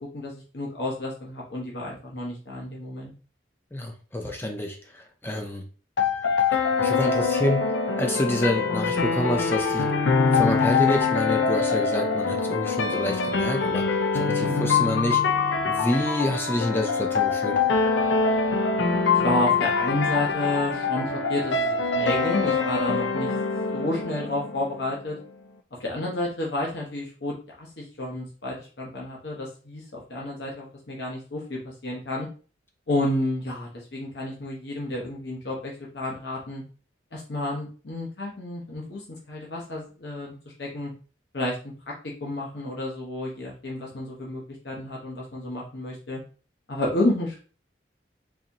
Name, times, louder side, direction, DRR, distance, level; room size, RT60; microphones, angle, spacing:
voice 1, 0.1-3.1 14.3-14.7 19.2-23.3 23.7-25.2 25.7-32.3 32.9-36.6 37.1-40.3 40.6-40.9 41.3-41.6 42.2-46.2 46.7-47.4, left 1 dB, 75° left, -3 dB, 0.9 m, -30 dB
voice 2, 3.7-5.6 6.5-7.7 8.0-9.9 10.3-15.2 15.6-17.6, left 1 dB, 10° left, 3 dB, 0.5 m, -28 dB
sound 1, 6.0-24.9, left 4 dB, 90° left, 0.5 m, -24 dB
4.0 x 2.6 x 2.9 m, 0.37 s
head